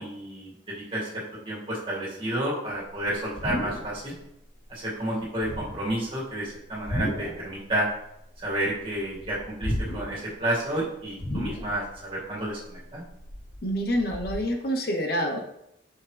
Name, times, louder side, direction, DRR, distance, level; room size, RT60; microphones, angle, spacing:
voice 1, 0.0-4.2 4.7-7.9 8.4-13.1, right 1 dB, 30° right, -5 dB, 2.1 m, -31 dB
sound 1, 2.8-4.2 4.4-4.8 5.3-6.0 6.7-7.5 7.8-8.8 9.1-10.3 10.6-10.7 11.2-12.0 12.4-14.3, left 1 dB, 30° left, 0.9 m, -33 dB
voice 2, 13.6-15.4, equal, 55° left, 2 dB, 0.9 m, -27 dB
7.4 x 5.7 x 3.3 m, 0.82 s
head